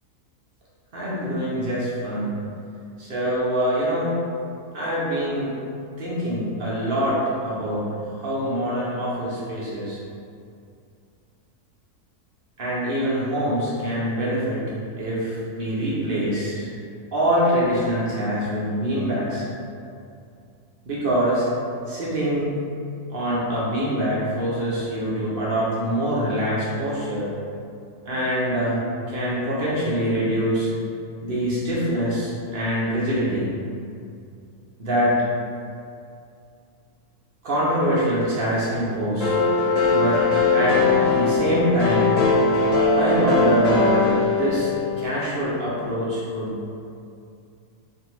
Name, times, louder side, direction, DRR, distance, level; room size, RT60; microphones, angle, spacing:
voice 1, 0.9-2.4 3.0-4.2 4.7-5.5 6.0-10.0 12.6-16.7 17.1-19.4 20.8-21.5 21.9-22.5 23.1-27.3 28.0-28.8 29.1-30.7 31.2-33.5 34.8-35.2 37.4-39.3 39.9-40.3 40.5-40.8 41.1-42.1 42.9-44.7 45.0-46.6, equal, 60° right, -8 dB, 0.6 m, -24 dB
sound 1, 39.2-45.1, left 4 dB, 60° left, 1.0 m, -20 dB
2.6 x 2.6 x 3.0 m, 2.4 s
omnidirectional pair, 1.7 m